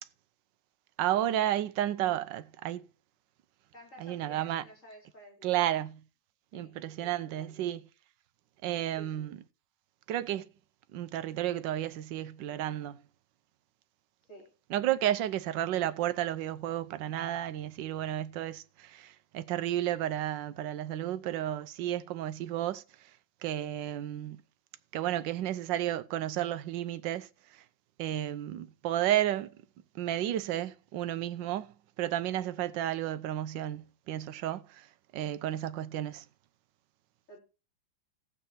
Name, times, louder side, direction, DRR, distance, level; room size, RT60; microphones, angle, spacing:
voice 1, 1.0-2.8 4.0-4.6 5.4-6.0 6.5-7.8 8.6-9.4 10.1-10.5 10.9-13.0 14.7-23.1 23.4-24.4 24.9-27.6 28.0-29.6 29.9-36.2, right 12 dB, 75° right, 1.4 m, -32 dB
voice 2, 3.7-5.8 6.5-6.8 7.0-7.7 9.0-9.3 14.3-14.5 37.3-37.4, right 1 dB, 40° left, 4.8 m, -53 dB
15.5 x 7.9 x 4.5 m
omnidirectional pair, 2.1 m